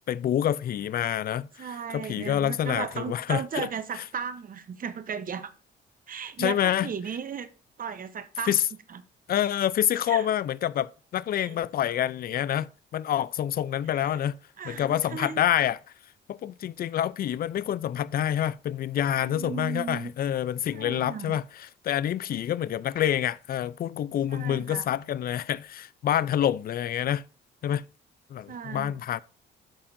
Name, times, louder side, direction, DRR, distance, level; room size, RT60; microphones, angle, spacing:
voice 1, 0.1-3.7 3.9-4.0 6.4-6.9 8.4-8.7 9.3-14.4 14.6-15.8 16.3-27.2 27.6-27.8 28.3-29.2, left 10 dB, 50° left, 0.4 m, -27 dB
voice 2, 1.6-5.5 6.1-7.5 7.8-8.5 8.9-9.0 10.1-10.3 11.4-11.6 13.9-14.2 14.6-15.4 19.2-20.1 20.7-21.4 24.3-24.9 28.5-28.9, right 7 dB, 45° right, 0.8 m, -35 dB
12.5 x 4.3 x 2.6 m
cardioid pair, 90°, 20 cm